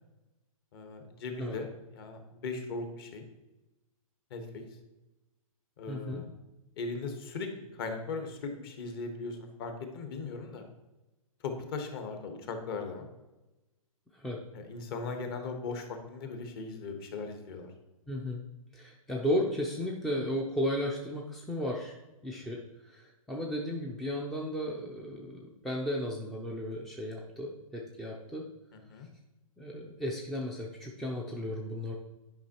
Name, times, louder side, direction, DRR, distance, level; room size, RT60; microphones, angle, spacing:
voice 1, 0.7-1.7 1.9-3.2 4.3-4.6 5.8-6.3 6.8-10.6 11.4-13.0 14.5-17.7 28.9-29.1, left 4 dB, 40° left, 5 dB, 1.2 m, -38 dB
voice 2, 5.9-6.2 14.1-14.4 18.1-18.4 18.7-28.5 29.6-31.9, equal, ahead, -1 dB, 0.4 m, -34 dB
9.3 x 5.4 x 2.9 m, 1.0 s
hypercardioid pair, 145°, 18 cm